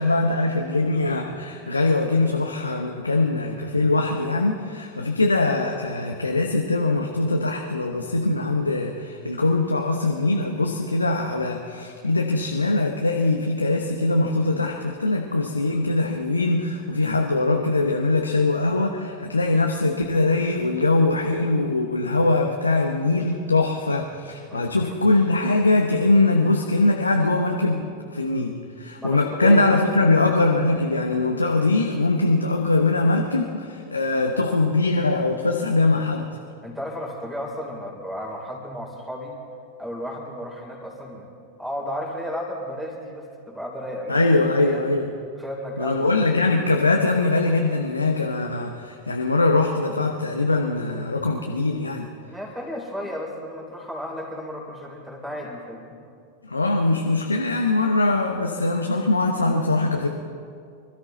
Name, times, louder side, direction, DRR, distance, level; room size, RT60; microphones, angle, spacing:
voice 1, 0.0-36.4 44.1-45.1 45.8-52.1 56.4-60.1, left 2 dB, 80° left, 2 dB, 0.9 m, -22 dB
voice 2, 24.5-25.0 29.0-29.8 36.6-39.4 39.8-41.3 41.6-44.3 44.6-44.8 45.4-46.6 52.3-55.9, equal, 5° right, -2 dB, 3.6 m, -34 dB
25.0 x 13.5 x 4.0 m, 2.4 s
figure-of-eight pair, 90°, 0 cm